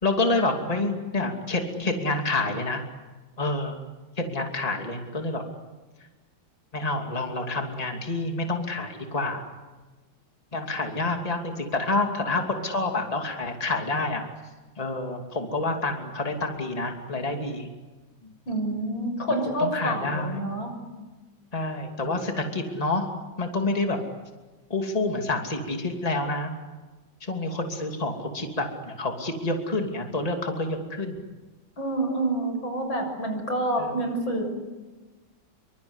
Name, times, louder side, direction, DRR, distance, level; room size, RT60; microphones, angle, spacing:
voice 1, 0.0-2.8 3.4-3.8 4.2-5.4 6.7-9.4 10.5-14.2 14.8-17.7 18.2-18.3 19.6-20.4 21.5-23.0 23.4-24.0 24.7-26.5 27.2-31.2 33.8-33.9, left 2 dB, 20° left, 3 dB, 2.8 m, -28 dB
voice 2, 18.5-20.7 31.8-34.4, right 1 dB, 75° left, 4 dB, 7.5 m, -27 dB
27.0 x 24.5 x 8.2 m, 1.2 s
omnidirectional pair, 2.1 m